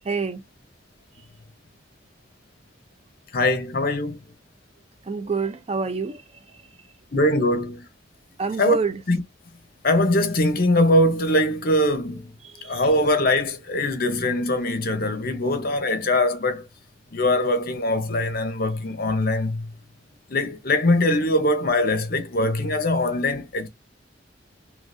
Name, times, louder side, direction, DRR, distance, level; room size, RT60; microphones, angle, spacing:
voice 1, 0.1-0.4 5.1-6.2 8.4-9.0 12.4-12.8, right 5 dB, 35° right, 0.5 m, -26 dB
voice 2, 3.3-4.2 7.1-7.9 8.6-8.7 9.1-9.2 9.8-12.3 12.6-16.7 17.1-19.7 20.3-23.7, left 1 dB, 55° left, 0.9 m, -22 dB
3.7 x 2.9 x 2.6 m
head